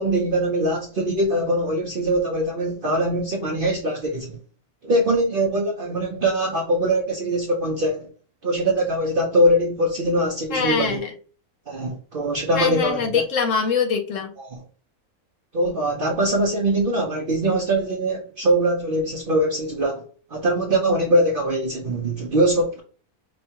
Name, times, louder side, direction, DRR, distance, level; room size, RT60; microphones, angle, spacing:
voice 1, 0.0-4.4 4.8-8.1 8.4-11.0 11.7-13.2 14.4-14.6 15.5-20.0 20.3-22.8, right 1 dB, 50° right, 0.6 m, -22 dB
voice 2, 10.5-11.1 12.5-14.3, left 6 dB, 65° left, 0.9 m, -23 dB
5.3 x 2.2 x 2.8 m
omnidirectional pair, 1.6 m